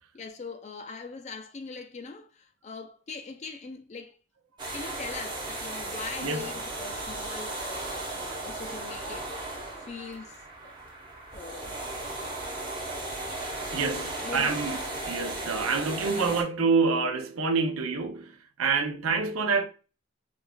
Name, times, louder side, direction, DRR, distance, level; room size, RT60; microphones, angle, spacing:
voice 1, 0.1-4.2 4.7-9.3 9.9-10.7 11.3-11.9 13.6-14.6, left 4 dB, 35° left, 0.4 m, -41 dB
sound 1, 4.6-16.4, right 2 dB, 20° right, 0.9 m, -36 dB
voice 2, 13.7-14.8 15.1-18.3 18.6-19.7, right 4 dB, 85° right, 0.5 m, -27 dB
5.2 x 2.4 x 2.2 m
head